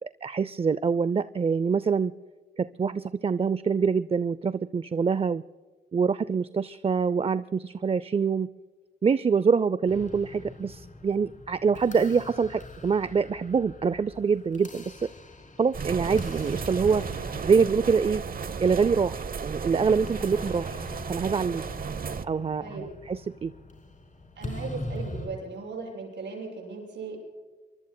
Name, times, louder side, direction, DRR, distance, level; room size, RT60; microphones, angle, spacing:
voice 1, 0.0-2.1 2.6-5.4 5.9-8.5 9.0-15.1 15.6-17.0 17.4-18.2 18.6-20.8 21.1-21.6 22.2-23.5, right 5 dB, 30° right, 16 dB, 0.4 m, -25 dB
sound 1, 9.9-25.3, left 2 dB, 45° left, 4.9 m, -42 dB
sound 2, 15.7-22.3, right 6 dB, 55° right, 0.8 m, -34 dB
voice 2, 24.4-27.2, right 4 dB, 85° right, 0 dB, 6.6 m, -37 dB
24.5 x 23.5 x 2.2 m, 1.4 s
cardioid pair, 65°, 18 cm